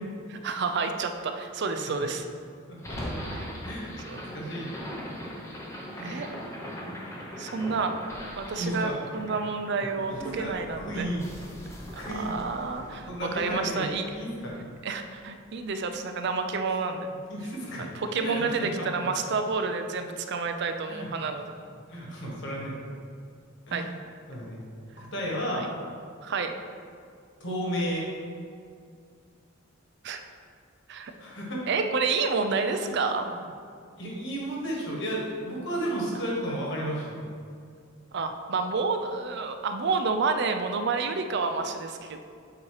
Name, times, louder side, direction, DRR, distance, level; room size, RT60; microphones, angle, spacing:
voice 1, 0.3-2.2 3.3-3.5 4.0-4.2 6.0-6.3 7.4-7.9 8.4-11.1 11.9-14.0 14.8-17.1 17.8-21.5 23.7-23.8 25.5-25.7 26.2-26.5 30.0-30.2 30.9-31.1 31.7-33.3 38.1-42.2, right 4 dB, 55° right, 6 dB, 0.4 m, -29 dB
voice 2, 1.7-2.1 2.7-3.0 3.6-3.9 4.3-4.7 5.9-6.2 8.6-9.0 10.2-11.3 11.7-12.4 13.1-14.6 17.3-17.9 18.2-18.9 20.9-21.1 21.9-22.8 23.7-24.0 24.3-24.6 25.0-25.7 27.4-28.1 31.2-31.7 32.9-33.4 34.0-37.2, equal, 60° left, -3 dB, 1.5 m, -33 dB
sound 1, 2.8-15.0, equal, 15° left, 0.7 m, -40 dB
7.4 x 2.9 x 4.7 m, 2.3 s
head